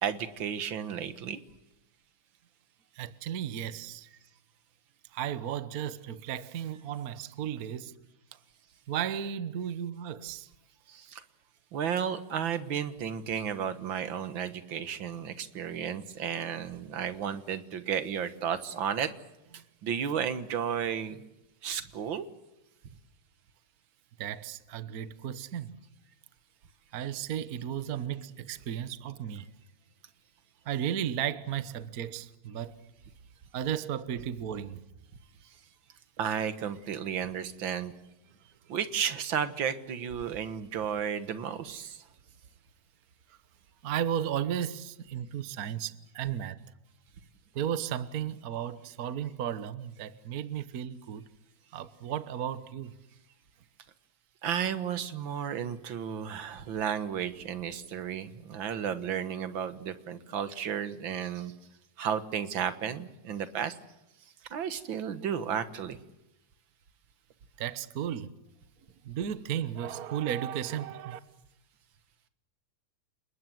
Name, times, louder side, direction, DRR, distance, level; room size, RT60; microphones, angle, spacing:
voice 1, 0.0-1.4 10.9-11.2 11.7-19.1 19.5-21.2 21.6-22.3 36.2-37.9 38.7-42.0 54.4-61.5 62.0-63.7 64.5-66.0, right 8 dB, 50° right, 1.7 m, -33 dB
voice 2, 3.0-4.1 5.1-7.9 8.9-10.5 24.2-25.7 26.9-29.5 30.6-32.7 33.5-34.8 43.8-46.6 47.5-51.2 51.7-52.9 67.6-68.3 69.0-71.2, right 9 dB, 85° right, 0.8 m, -34 dB
30.0 x 20.0 x 7.8 m
omnidirectional pair, 3.4 m